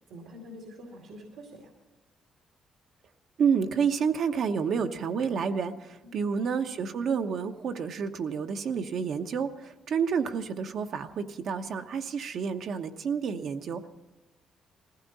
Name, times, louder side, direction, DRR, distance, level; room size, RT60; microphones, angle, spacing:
voice 1, 0.1-1.7 6.0-6.2, equal, 90° right, 1 dB, 2.4 m, -46 dB
voice 2, 3.4-13.9, right 6 dB, 65° right, 6 dB, 1.0 m, -29 dB
20.0 x 15.5 x 4.1 m, 1.1 s
cardioid pair, 90°, 0 cm